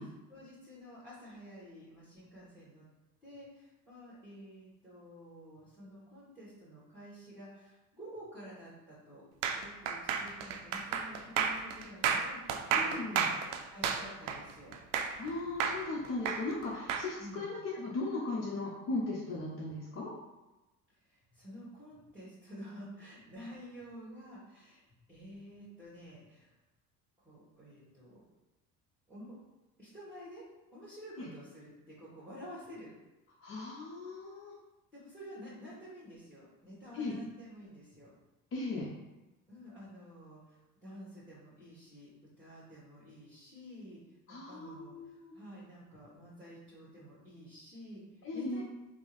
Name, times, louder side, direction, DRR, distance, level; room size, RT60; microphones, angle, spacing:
voice 1, 0.0-2.9 3.2-9.2 9.5-14.8 17.2-17.5 21.0-26.5 27.2-28.2 29.1-29.4 29.8-30.4 30.7-32.9 34.9-38.1 39.5-42.1 42.4-48.6, equal, 5° right, -10 dB, 1.4 m, -50 dB
sound 1, 9.4-15.3 15.6-17.1, right 7 dB, 55° right, 0.5 m, -32 dB
voice 2, 12.7-13.3 15.2-20.1 31.2-31.3 33.4-34.5 36.9-37.1 38.5-38.9 44.3-45.3 48.2-48.6, left 2 dB, 30° left, -5 dB, 0.7 m, -37 dB
5.2 x 2.0 x 3.1 m, 1.0 s
figure-of-eight pair, 60°, 47 cm